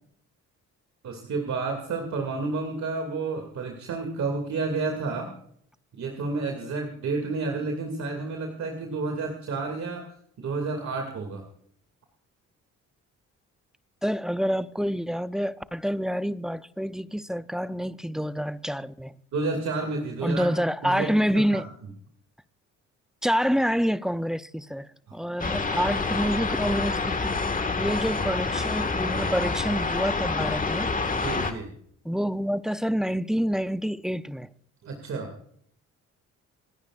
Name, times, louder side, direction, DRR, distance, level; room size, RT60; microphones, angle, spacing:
voice 1, 1.0-5.3 5.9-10.1 10.4-11.5 19.3-20.5 20.8-21.6 25.1-25.2 28.1-28.2 31.1-31.7 34.8-35.3, right 3 dB, 65° right, 2.5 m, -30 dB
voice 2, 14.0-19.1 20.2-21.6 23.2-27.4 27.8-30.9 32.0-34.5, equal, ahead, 0.6 m, -27 dB
sound 1, 25.4-31.5, left 4 dB, 25° left, 1.8 m, -27 dB
28.5 x 10.0 x 2.5 m
cardioid pair, 90°, 30 cm